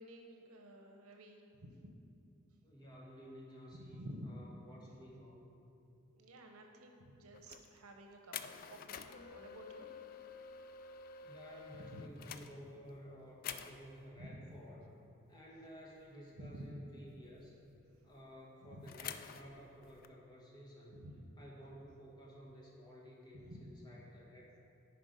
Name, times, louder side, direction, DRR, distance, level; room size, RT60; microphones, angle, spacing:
voice 1, 0.0-1.9 3.9-4.4 6.2-9.9 11.8-12.0 14.2-14.4 16.3-16.8 18.6-18.9 20.9-21.2 23.4-23.7, equal, 85° right, 3 dB, 0.9 m, -52 dB
voice 2, 2.6-5.5 11.2-14.9 15.3-17.5 18.0-21.1 21.4-24.6, equal, 20° left, -4 dB, 1.4 m, -54 dB
sound 1, 7.3-7.8 8.3-13.0 13.4-14.0 16.0-16.3 16.6-16.7 17.1-18.2 18.9-20.1, left 7 dB, 40° left, 0.3 m, -49 dB
10.5 x 4.7 x 5.2 m, 2.6 s
head